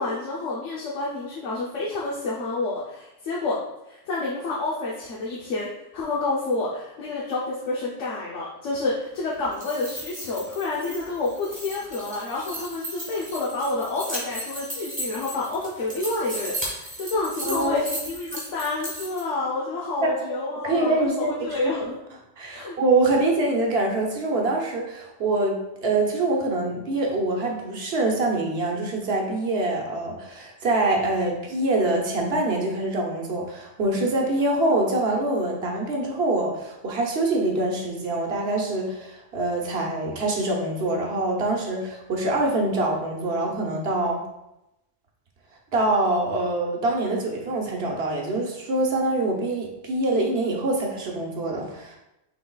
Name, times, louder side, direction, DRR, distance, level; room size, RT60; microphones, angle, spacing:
voice 1, 0.0-3.6 3.9-5.7 5.9-22.0 22.5-22.8, left 3 dB, 75° left, -5 dB, 1.1 m, -29 dB
sound 1, 9.4-19.2, right 1 dB, 5° right, 1.4 m, -35 dB
voice 2, 17.5-17.8 20.0-20.1 20.6-21.7 22.4-44.2 45.7-52.0, right 2 dB, 55° right, 0 dB, 1.0 m, -25 dB
5.9 x 3.9 x 2.3 m, 0.90 s
omnidirectional pair, 1.3 m